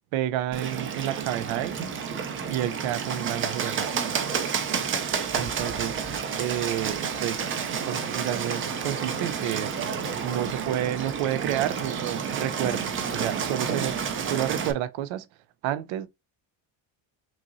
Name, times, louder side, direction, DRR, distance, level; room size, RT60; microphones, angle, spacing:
voice 1, 0.1-1.8 2.5-4.1 5.4-7.5 7.8-9.8 10.2-15.3 15.6-16.1, right 12 dB, 80° right, 0.6 m, -30 dB
Bird, 0.5-14.7, right 6 dB, 30° right, 0.4 m, -30 dB
5.9 x 2.7 x 2.6 m
cardioid pair, 160°, 47 cm